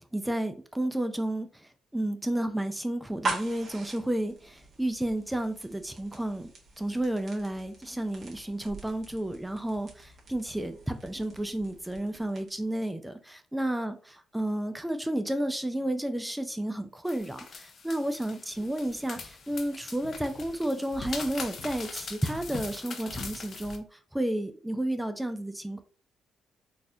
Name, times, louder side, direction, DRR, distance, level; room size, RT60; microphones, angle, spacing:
voice 1, 0.1-6.5 6.8-14.0 14.3-25.8, right 1 dB, 5° right, 0.4 m, -32 dB
sound 1, 3.1-12.7, right 3 dB, 45° right, 1.2 m, -42 dB
sound 2, 17.1-23.8, left 4 dB, 50° left, 0.6 m, -41 dB
4.0 x 2.4 x 2.7 m
cardioid pair, 90°, 0 cm